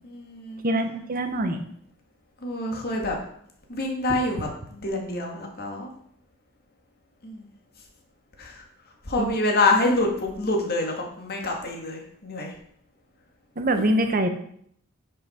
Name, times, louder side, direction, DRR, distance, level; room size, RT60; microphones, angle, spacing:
voice 1, 0.0-0.6 2.4-3.2 3.7-5.9 7.2-7.5 8.4-8.6 9.0-12.6 13.8-13.9, left 2 dB, 50° left, 1 dB, 1.9 m, -26 dB
voice 2, 0.6-1.6 9.2-9.3 13.6-14.3, right 1 dB, 45° right, 7 dB, 1.0 m, -24 dB
9.6 x 5.7 x 4.4 m, 0.66 s
head